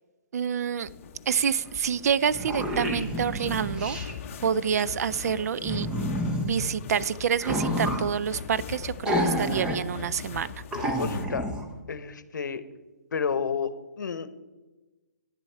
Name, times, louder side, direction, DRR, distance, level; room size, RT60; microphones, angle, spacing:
voice 1, 0.3-0.9 1.3-4.0 4.4-5.9 6.4-10.5, right 7 dB, 60° right, 18 dB, 0.4 m, -27 dB
sound 1, 0.8-11.3, left 7 dB, 45° left, 0.7 m, -41 dB
sound 2, 1.8-1.9 2.1-4.1 5.6-6.5 7.4-8.1 9.1-9.8 10.2-10.3 10.7-11.6, equal, 10° right, 0.7 m, -29 dB
voice 2, 11.0-11.5 11.9-12.6 13.1-14.4, left 6 dB, 85° left, 15 dB, 0.8 m, -31 dB
9.7 x 7.0 x 4.4 m, 1.2 s
hypercardioid pair, 160°, 10 cm